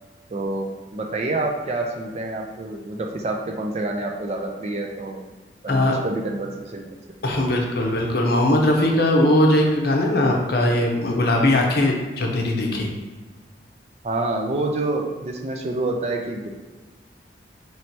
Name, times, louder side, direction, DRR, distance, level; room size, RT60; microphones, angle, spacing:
voice 1, 0.3-5.2 5.6-6.9 7.4-7.5 14.0-16.5, right 2 dB, 35° right, 2 dB, 0.4 m, -27 dB
voice 2, 7.2-12.9, left 1 dB, 55° left, 0 dB, 0.6 m, -20 dB
3.1 x 2.7 x 4.4 m, 1.3 s
head